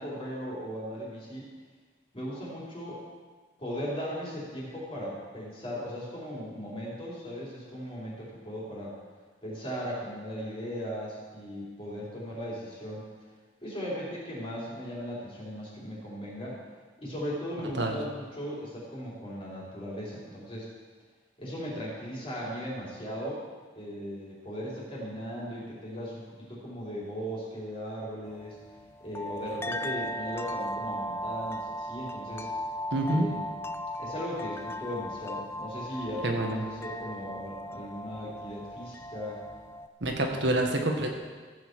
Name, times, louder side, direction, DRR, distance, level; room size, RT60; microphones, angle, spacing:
voice 1, 0.0-1.5 2.1-3.0 3.6-9.0 9.4-13.1 13.6-16.6 17.0-20.7 21.4-23.4 23.7-28.6 29.0-32.5 33.1-33.3 34.0-39.4, equal, 30° left, -6 dB, 3.8 m, -37 dB
sound 1, 28.3-39.9, equal, 15° left, 0.3 m, -37 dB
voice 2, 32.9-33.3 36.2-36.6 40.0-41.1, right 1 dB, 75° right, 2 dB, 1.5 m, -27 dB
15.0 x 8.1 x 4.7 m, 1.5 s
head